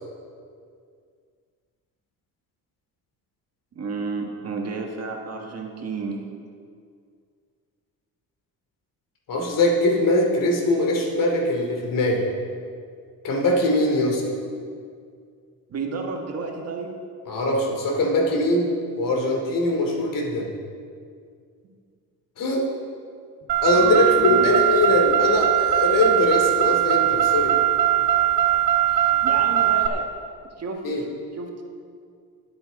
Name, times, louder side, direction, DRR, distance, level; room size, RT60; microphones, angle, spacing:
voice 1, 3.7-6.2 15.7-16.9 23.7-24.6 28.9-30.1 30.6-30.8 31.4-31.6, right 4 dB, 45° right, 2 dB, 1.6 m, -31 dB
voice 2, 9.3-12.3 13.2-14.2 17.3-18.7 19.0-20.5 22.4-22.7 23.6-27.5 30.8-31.0, left 2 dB, 60° left, 0 dB, 2.8 m, -21 dB
Car, 23.5-29.9, right 12 dB, 80° right, 1.0 m, -20 dB
20.5 x 8.0 x 4.1 m, 2.2 s
cardioid pair, 130°, 36 cm